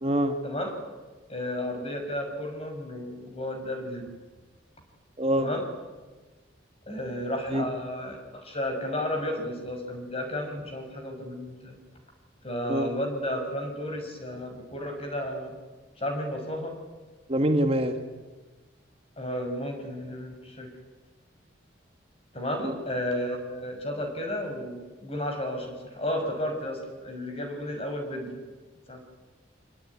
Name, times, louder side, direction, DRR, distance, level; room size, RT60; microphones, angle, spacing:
voice 1, 0.0-0.4 5.2-5.5 7.5-7.7 12.7-12.9 17.3-18.0 22.6-22.7, right 1 dB, 30° right, 6 dB, 1.5 m, -25 dB
voice 2, 1.3-4.1 5.4-5.7 6.9-11.8 12.4-15.5 16.0-16.8 19.2-20.7 22.3-28.4 28.9-29.1, left 1 dB, 30° left, 4 dB, 6.0 m, -33 dB
25.5 x 21.0 x 9.8 m, 1.3 s
head